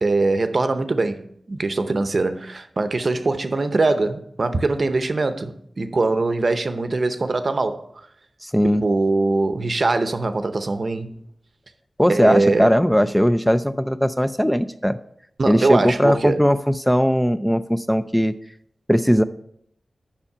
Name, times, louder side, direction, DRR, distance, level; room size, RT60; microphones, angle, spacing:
voice 1, 0.0-7.9 8.8-11.1 12.1-12.7 15.4-16.4, right 3 dB, 50° right, 0.7 m, -22 dB
voice 2, 8.4-8.8 12.0-15.0 15.5-18.3 18.9-19.2, equal, 5° left, 0.3 m, -19 dB
7.1 x 5.6 x 5.5 m
wide cardioid pair, 85°, 0 cm